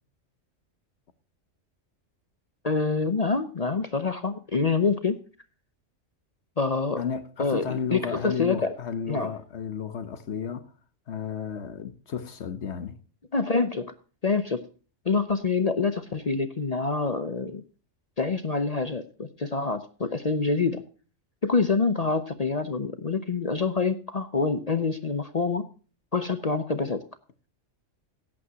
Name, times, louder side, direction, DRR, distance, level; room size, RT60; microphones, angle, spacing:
voice 1, 2.6-5.2 6.6-7.0 7.4-7.6 7.9-8.7 9.1-9.3 13.3-13.9 14.2-14.7 15.1-17.6 18.2-20.8 21.4-25.6 26.1-27.0, left 4 dB, 40° left, 0.7 m, -26 dB
voice 2, 7.0-10.7 11.1-13.0, left 7 dB, 65° left, 1.2 m, -33 dB
17.0 x 8.7 x 2.8 m
omnidirectional pair, 1.3 m